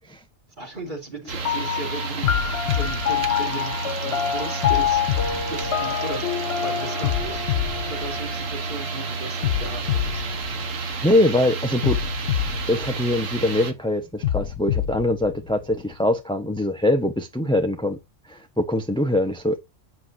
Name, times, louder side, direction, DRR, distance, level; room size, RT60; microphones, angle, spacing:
voice 1, 0.6-7.5 7.9-10.3, right 3 dB, 35° right, 3.2 m, -37 dB
sound 1, 1.3-1.6 2.2-4.0 4.6-6.4 7.0-8.8 9.4-11.2 11.8-13.6 14.2-16.0, left 11 dB, 75° left, 1.0 m, -28 dB
sound 2, 1.3-13.7, right 4 dB, 75° right, 1.5 m, -30 dB
sound 3, 1.5-10.3, left 9 dB, 60° left, 0.9 m, -28 dB
voice 2, 11.0-12.0 12.7-18.0 18.3-19.6, left 1 dB, 5° left, 0.7 m, -23 dB
8.4 x 6.3 x 2.7 m
omnidirectional pair, 1.4 m